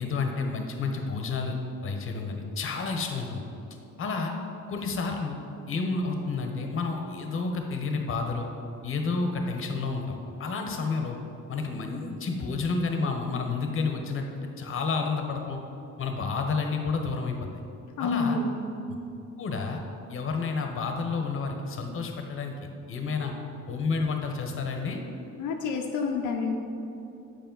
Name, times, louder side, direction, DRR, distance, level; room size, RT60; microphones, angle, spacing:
voice 1, 0.0-3.4 4.0-4.3 4.7-8.5 8.8-11.2 11.5-14.3 14.6-15.6 16.0-17.5 18.0-18.4 18.9-19.0 19.4-19.8 20.1-23.3 23.7-25.0, left 4 dB, 45° left, 3 dB, 0.9 m, -30 dB
voice 2, 18.0-18.6 25.4-26.6, left 4 dB, 80° left, 2 dB, 0.6 m, -28 dB
7.0 x 4.8 x 3.8 m, 2.8 s
cardioid pair, 90°, 30 cm